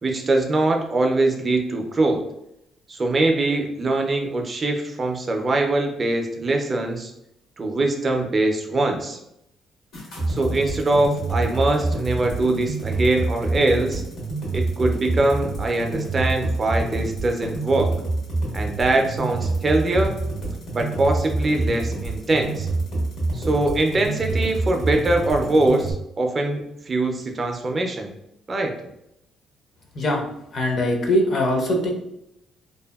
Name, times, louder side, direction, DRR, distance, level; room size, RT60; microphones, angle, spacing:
voice 1, 0.0-2.2 2.9-7.1 7.6-9.2 10.3-14.0 14.5-17.9 18.5-20.2 20.7-22.7 23.3-28.1 28.5-28.7, right 2 dB, 30° right, 3 dB, 0.3 m, -22 dB
sound 1, 9.9-25.9, right 2 dB, 75° left, 1.0 m, -27 dB
voice 2, 30.5-31.9, left 1 dB, 45° left, 1 dB, 0.5 m, -21 dB
2.6 x 2.5 x 2.2 m, 0.80 s
cardioid pair, 130°, 0 cm